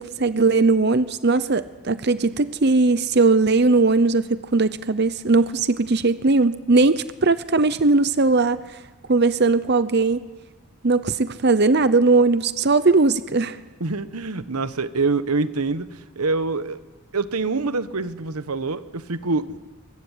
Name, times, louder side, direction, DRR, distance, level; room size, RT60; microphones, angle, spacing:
voice 1, 0.0-8.8 9.1-10.2 10.8-13.6, right 3 dB, 50° right, 0.7 m, -19 dB
voice 2, 13.8-16.8 17.1-19.6, right 3 dB, 90° right, 1.2 m, -25 dB
23.0 x 22.0 x 10.0 m
head